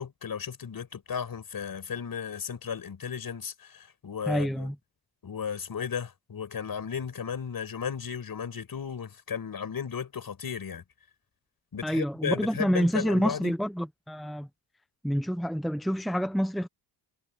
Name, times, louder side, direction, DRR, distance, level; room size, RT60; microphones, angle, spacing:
voice 1, 0.0-4.7 5.2-10.8 11.7-13.5, left 7 dB, 50° left, 5.8 m, -35 dB
voice 2, 4.3-4.7 11.8-14.5 15.0-16.7, equal, ahead, 0.9 m, -27 dB
cardioid pair, 90°, 45 cm